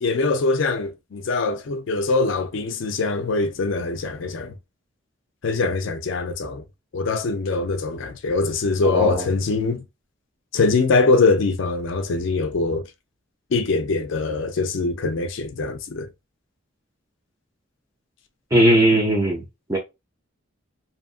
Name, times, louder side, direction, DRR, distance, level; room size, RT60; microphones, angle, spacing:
voice 1, 0.0-4.5 5.4-6.6 6.9-9.8 10.5-12.8 13.5-16.1, left 3 dB, 60° left, 0.4 m, -23 dB
voice 2, 8.8-9.2 18.5-19.4 19.7-19.8, right 1 dB, 15° right, 0.5 m, -18 dB
2.7 x 2.5 x 2.3 m
head